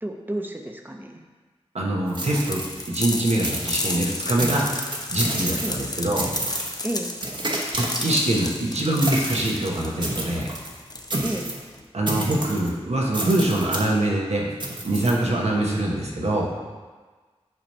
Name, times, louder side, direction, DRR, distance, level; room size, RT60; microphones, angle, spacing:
voice 1, 0.0-1.2 5.6-5.8 6.8-7.1 11.2-11.5, right 1 dB, 20° right, 2 dB, 0.8 m, -31 dB
voice 2, 1.7-2.6 2.9-4.7 5.1-6.3 7.7-10.5 11.9-14.5 14.8-16.5, right 1 dB, 90° right, -2 dB, 1.1 m, -24 dB
sound 1, 2.1-3.1 3.4-4.0 4.4-5.9 6.2-6.8 7.2-8.5 9.0-9.6 10.0-10.7 11.1-11.6 12.1-12.7 13.1-13.9 14.6-15.1, right 1 dB, 45° right, 1.0 m, -30 dB
sound 2, 2.4-11.8, left 2 dB, 35° left, 0.6 m, -33 dB
7.9 x 3.0 x 5.4 m, 1.4 s
wide cardioid pair, 45°, 11 cm